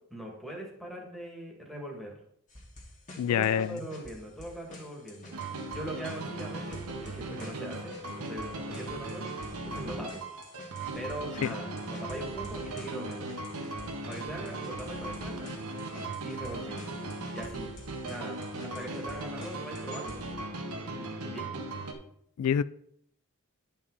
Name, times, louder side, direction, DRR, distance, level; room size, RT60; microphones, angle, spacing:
voice 1, 0.1-2.1 3.3-9.3 9.7-10.2 10.9-13.3 14.1-15.5 16.2-16.8 17.3-17.7 18.0-20.3 21.0-21.6, right 1 dB, ahead, -1 dB, 2.1 m, -41 dB
sound 1, 2.5-20.3, left 1 dB, 35° left, 2.1 m, -50 dB
voice 2, 3.2-3.8 11.4-11.5 22.4-22.6, left 9 dB, 90° left, 17 dB, 0.3 m, -26 dB
sound 2, 5.3-21.9, right 2 dB, 85° right, 1.3 m, -38 dB
11.0 x 5.6 x 4.0 m, 0.70 s
head